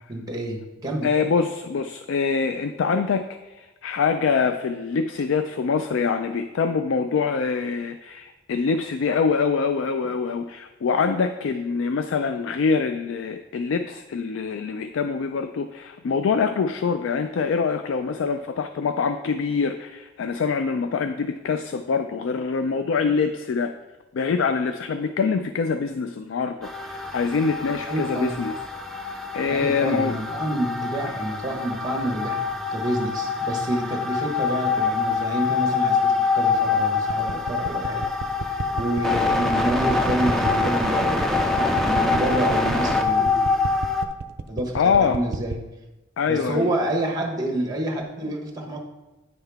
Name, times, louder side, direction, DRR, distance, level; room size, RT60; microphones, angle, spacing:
voice 1, 0.1-1.1 27.9-28.3 29.5-38.1 38.3-43.5 44.5-45.6 46.2-48.8, right 1 dB, 20° right, 1 dB, 1.1 m, -28 dB
voice 2, 1.0-23.7 24.1-28.5 29.3-30.2 44.7-45.2 46.2-46.7, left 5 dB, 70° left, 9 dB, 0.3 m, -24 dB
sound 1, 26.6-44.1, left 4 dB, ahead, 0.5 m, -25 dB
sound 2, 37.1-45.6, right 4 dB, 50° right, 0.4 m, -32 dB
9.4 x 5.6 x 3.4 m, 1.1 s
head